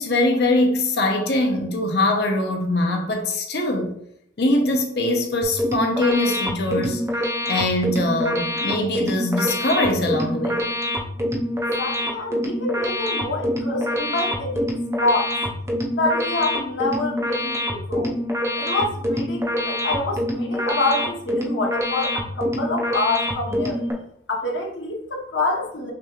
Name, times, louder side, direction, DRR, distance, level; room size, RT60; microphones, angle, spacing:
voice 1, 0.0-3.9 4.4-7.0 7.5-10.6, left 2 dB, 55° left, 0.7 m, -22 dB
sound 1, 5.4-23.9, equal, 15° right, 0.5 m, -26 dB
voice 2, 11.8-15.3 15.9-18.1 18.6-23.8 24.3-25.9, left 2 dB, 75° left, 1.1 m, -26 dB
6.0 x 3.0 x 2.4 m
head